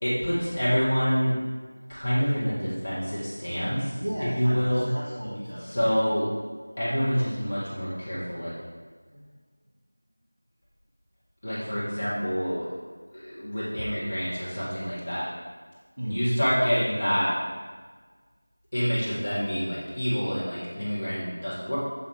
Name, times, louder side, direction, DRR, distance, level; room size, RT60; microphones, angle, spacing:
voice 1, 0.0-1.3 1.9-4.0 4.3-4.8 5.7-6.3 6.8-8.5 11.4-12.7 13.1-15.3 16.1-17.3 18.7-21.8, equal, 35° left, -10 dB, 1.9 m, -27 dB
voice 2, 3.9-6.0 8.1-9.3 13.8-14.0 16.0-16.3, equal, 70° right, -5 dB, 1.2 m, -36 dB
8.1 x 3.6 x 4.7 m, 1.5 s
figure-of-eight pair, 175°, 0 cm